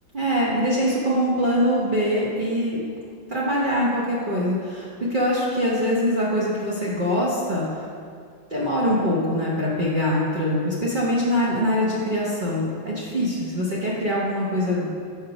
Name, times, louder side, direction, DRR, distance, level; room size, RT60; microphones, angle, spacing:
voice 1, 0.1-2.8 3.3-7.8 8.5-14.9, equal, 50° right, -6 dB, 0.6 m, -23 dB
5.6 x 5.5 x 4.9 m, 2.2 s
omnidirectional pair, 2.2 m